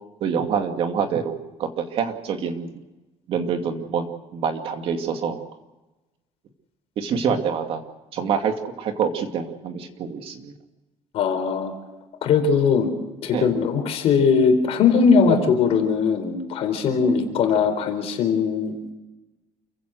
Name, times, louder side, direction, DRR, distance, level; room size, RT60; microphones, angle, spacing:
voice 1, 0.2-2.7 3.3-5.4 7.0-7.8 8.1-10.5 13.3-13.5 15.3-15.5 17.0-17.4, right 6 dB, 50° right, 5 dB, 2.5 m, -26 dB
voice 2, 11.1-11.7 12.2-12.9 13.2-18.7, left 5 dB, 55° left, 6 dB, 4.2 m, -20 dB
28.5 x 16.0 x 6.5 m, 1.1 s
cardioid pair, 170°, 12 cm